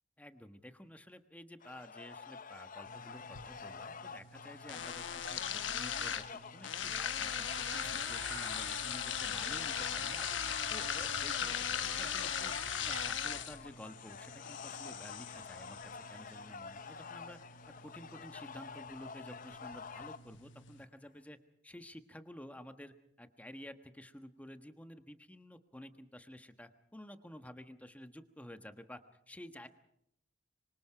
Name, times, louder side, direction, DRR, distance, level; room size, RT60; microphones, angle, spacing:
voice 1, 0.2-7.5 7.7-12.5 12.8-17.4 17.7-21.4 21.6-29.0 29.3-29.7, left 1 dB, 10° left, 8 dB, 1.3 m, -52 dB
sound 1, 1.6-20.2, left 5 dB, 45° left, 0.8 m, -48 dB
sound 2, 2.8-20.8, left 8 dB, 75° left, 1.2 m, -40 dB
sound 3, 7.2-13.1, right 4 dB, 90° right, 3.0 m, -49 dB
25.5 x 24.0 x 5.0 m, 0.70 s
head